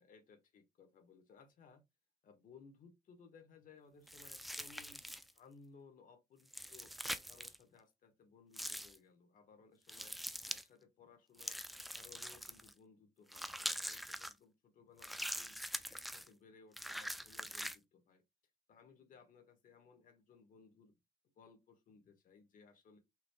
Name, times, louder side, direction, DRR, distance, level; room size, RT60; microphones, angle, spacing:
voice 1, 0.0-1.8 2.2-5.0 5.3-7.0 7.3-10.2 10.5-11.6 11.9-15.6 15.9-18.2 18.7-20.9 21.4-23.0, left 5 dB, 55° left, 1.3 m, -62 dB
sound 1, 4.1-5.4 6.5-7.6 8.5-9.0 9.9-10.6 11.4-12.7 13.3-14.3 15.0-16.3 16.7-17.8, equal, ahead, 0.3 m, -43 dB
5.8 x 3.1 x 2.3 m
cardioid pair, 110°, 17 cm